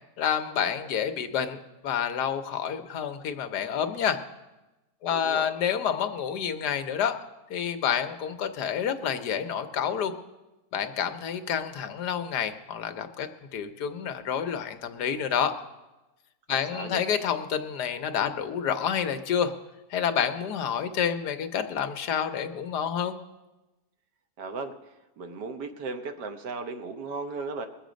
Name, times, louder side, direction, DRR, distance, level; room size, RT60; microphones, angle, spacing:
voice 1, 0.2-4.2 5.0-7.2 7.5-10.1 10.7-15.5 16.5-19.5 19.9-23.2, left 8 dB, 75° left, 9 dB, 1.4 m, -29 dB
voice 2, 5.1-5.5 16.5-17.0 24.4-27.7, right 3 dB, 85° right, 6 dB, 1.7 m, -36 dB
21.0 x 7.3 x 5.1 m, 1.0 s
omnidirectional pair, 1.8 m